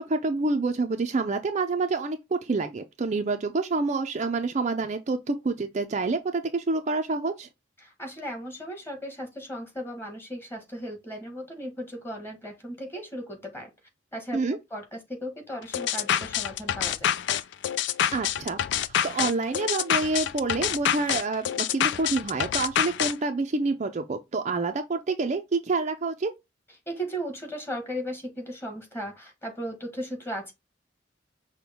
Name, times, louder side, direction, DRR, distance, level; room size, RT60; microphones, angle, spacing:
voice 1, 0.0-7.5 14.3-14.6 18.1-18.6 19.0-26.3, right 3 dB, 40° right, 0.4 m, -27 dB
voice 2, 7.8-13.7 14.1-14.4 14.7-17.1 26.9-30.5, equal, 15° left, 1.5 m, -36 dB
sound 1, 15.7-23.1, left 10 dB, 65° left, 0.3 m, -26 dB
6.0 x 2.2 x 3.5 m
head